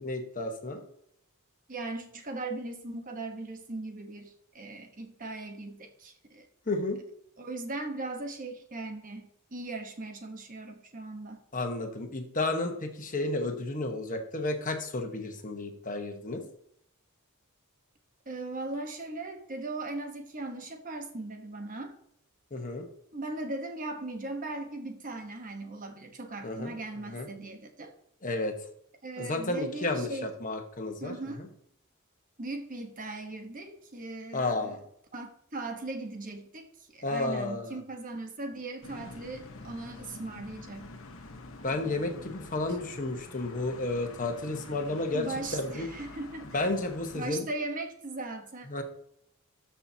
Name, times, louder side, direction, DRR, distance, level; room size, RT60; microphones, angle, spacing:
voice 1, 0.0-0.8 6.7-7.0 11.5-16.4 22.5-22.9 26.4-26.7 27.1-27.3 28.2-28.5 29.2-31.5 34.3-34.8 37.0-37.7 41.6-45.2 45.5-45.9 46.5-47.5 48.7-48.8, left 2 dB, 35° left, 4 dB, 1.2 m, -32 dB
voice 2, 1.7-6.5 7.4-11.4 18.3-21.9 23.1-27.9 29.0-30.3 31.0-31.4 32.4-34.7 35.1-40.9 45.1-46.5 47.1-48.7, right 2 dB, 40° right, 5 dB, 1.1 m, -38 dB
sound 1, 38.8-47.3, left 3 dB, 65° left, 1.1 m, -47 dB
13.0 x 5.8 x 2.8 m, 0.72 s
head